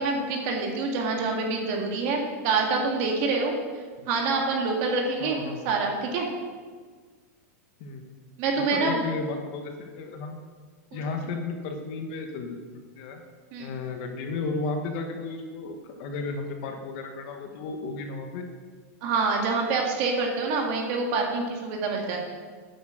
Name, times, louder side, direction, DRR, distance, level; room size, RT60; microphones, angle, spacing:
voice 1, 0.0-3.5 4.1-5.4 5.6-6.3 8.4-9.0 13.5-13.7 19.0-22.2, right 4 dB, 35° right, 0 dB, 2.1 m, -26 dB
voice 2, 5.2-5.7 7.8-8.0 8.7-10.4 10.9-12.6 13.0-13.2 13.6-18.4, left 3 dB, 40° left, 4 dB, 1.2 m, -33 dB
9.9 x 8.4 x 6.3 m, 1.5 s
supercardioid pair, 175°, 8 cm